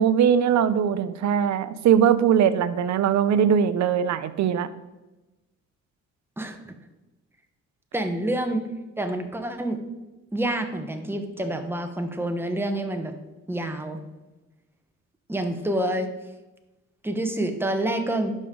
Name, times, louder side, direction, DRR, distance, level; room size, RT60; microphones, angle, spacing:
voice 1, 0.0-4.7, right 8 dB, 65° right, 13 dB, 0.7 m, -21 dB
voice 2, 6.4-6.7 7.9-8.6 9.0-9.8 10.3-13.1 13.5-14.0 15.3-16.1 17.0-18.3, right 1 dB, 5° right, 5 dB, 1.1 m, -27 dB
11.5 x 5.3 x 3.8 m, 1.1 s
cardioid pair, 90°, 30 cm